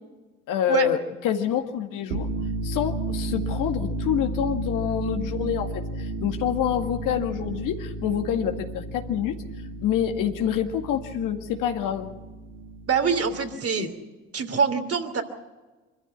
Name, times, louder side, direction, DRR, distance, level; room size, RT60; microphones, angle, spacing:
voice 1, 0.5-1.0 1.2-2.3 2.6-9.4 9.8-12.1 13.8-13.9, left 10 dB, 65° left, 5 dB, 2.0 m, -27 dB
sound 1, 2.0-13.5, right 2 dB, 75° right, 2.2 m, -33 dB
voice 2, 12.9-13.9 14.3-15.2, right 6 dB, 40° right, 7 dB, 3.0 m, -24 dB
25.0 x 14.5 x 8.1 m, 1.2 s
hypercardioid pair, 55°, 35 cm